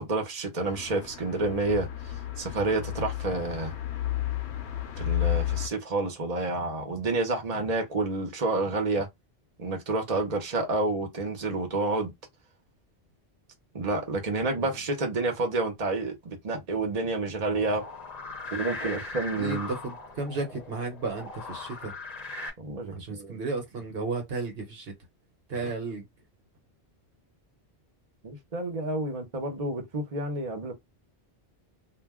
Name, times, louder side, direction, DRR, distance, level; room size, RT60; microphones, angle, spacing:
voice 1, 0.0-1.9 2.4-3.7 5.0-9.1 9.6-12.1 13.7-17.8 18.5-19.7 22.6-23.4 28.2-30.7, right 2 dB, 40° right, 0.9 m, -29 dB
sound 1, 0.6-5.7, left 12 dB, 85° left, 0.9 m, -32 dB
sound 2, 17.5-22.5, left 3 dB, 45° left, 0.7 m, -39 dB
voice 2, 19.4-22.0 22.9-24.9 25.5-26.1, right 3 dB, 65° right, 1.1 m, -34 dB
2.4 x 2.2 x 3.5 m
omnidirectional pair, 1.1 m